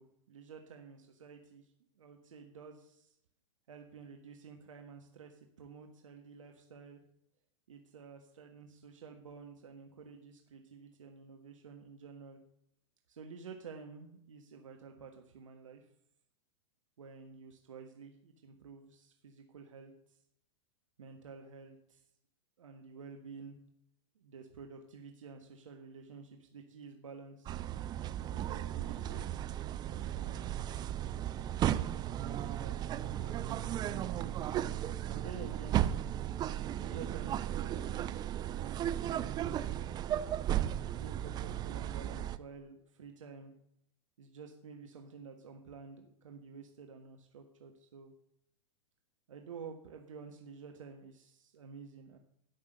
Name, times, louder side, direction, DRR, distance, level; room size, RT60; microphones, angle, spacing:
voice 1, 0.0-1.7 2.0-3.1 3.7-7.0 7.7-12.4 13.1-15.9 17.0-19.9 21.0-22.0 22.6-23.6 24.1-27.6 28.3-29.2 29.8-30.8 31.6-34.4 35.1-35.9 36.6-38.8 39.2-40.0 40.9-43.5 44.2-48.1 49.3-52.2, right 5 dB, 70° right, 3 dB, 1.5 m, -51 dB
sound 1, 27.5-42.4, right 11 dB, 25° right, 0.5 m, -35 dB
13.5 x 6.0 x 6.7 m, 0.71 s
figure-of-eight pair, 100°, 17 cm